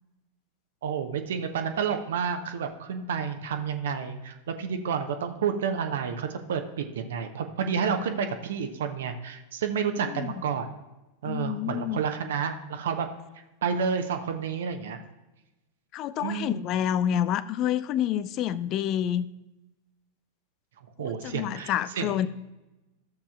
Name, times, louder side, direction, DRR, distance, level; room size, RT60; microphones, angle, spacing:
voice 1, 0.8-10.7 11.2-13.1 13.6-15.0 16.2-16.6 21.0-22.2, right 6 dB, 60° right, 6 dB, 0.7 m, -30 dB
voice 2, 10.0-10.3 11.2-12.0 15.9-19.3 21.0-22.3, left 10 dB, 35° left, 17 dB, 0.4 m, -28 dB
13.5 x 7.0 x 2.4 m, 1.0 s
figure-of-eight pair, 90°, 0 cm